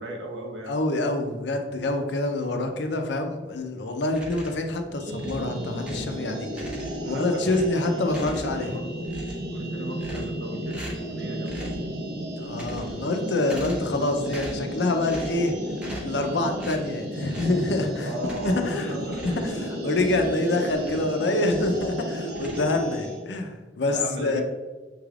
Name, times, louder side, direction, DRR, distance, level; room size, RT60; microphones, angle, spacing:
voice 1, 0.0-0.7 7.0-9.2 9.5-11.8 18.0-19.4 20.5-20.6 23.9-24.4, right 1 dB, 85° right, 0 dB, 0.9 m, -37 dB
voice 2, 0.7-6.7 7.0-8.8 12.4-15.6 16.0-18.1 18.4-18.9 19.2-24.4, left 2 dB, 80° left, 5 dB, 0.6 m, -26 dB
sound 1, 4.1-4.7 5.2-6.2 6.5-7.1 7.5-8.7 9.0-9.6 10.0-10.4 10.7-11.1 11.4-11.9 12.4-13.1 13.4-14.0 14.2-14.7 15.1-15.5 15.8-16.2 16.6-16.9 17.3-17.6 18.2-18.7 19.1-21.1 21.4-21.9 22.3-23.1, equal, 5° right, 0.7 m, -41 dB
sound 2, 4.9-23.2, equal, 60° right, 0.7 m, -33 dB
5.9 x 3.3 x 2.4 m, 1.3 s
head